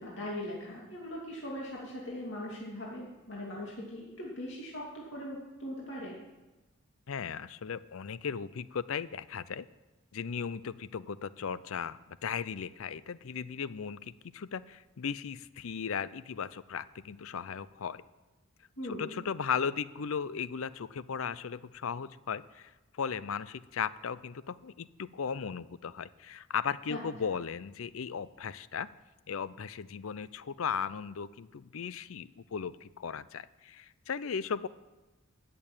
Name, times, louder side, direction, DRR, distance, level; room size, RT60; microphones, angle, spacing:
voice 1, 0.0-6.2 18.8-19.1 26.9-27.0, left 1 dB, 60° left, -4 dB, 2.5 m, -40 dB
voice 2, 7.1-9.7 10.1-18.0 18.8-22.7 23.0-28.9 29.3-34.7, left 6 dB, 75° left, 17 dB, 0.5 m, -36 dB
14.0 x 6.9 x 8.9 m, 1.1 s
head